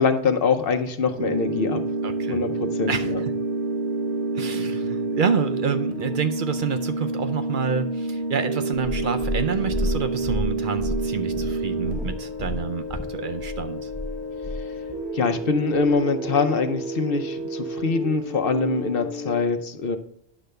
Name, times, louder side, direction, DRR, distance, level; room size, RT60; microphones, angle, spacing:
voice 1, 0.0-1.8 2.3-3.2 15.1-20.0, left 4 dB, 60° left, 8 dB, 0.9 m, -24 dB
sound 1, 1.2-19.4, right 2 dB, 80° right, 1.2 m, -29 dB
voice 2, 2.0-2.4 2.9-3.3 4.3-13.9, right 6 dB, 60° right, 8 dB, 0.6 m, -28 dB
Purr, 8.7-15.1 15.8-15.9, left 1 dB, 10° left, 0.8 m, -31 dB
9.9 x 3.3 x 6.6 m, 0.70 s
omnidirectional pair, 1.1 m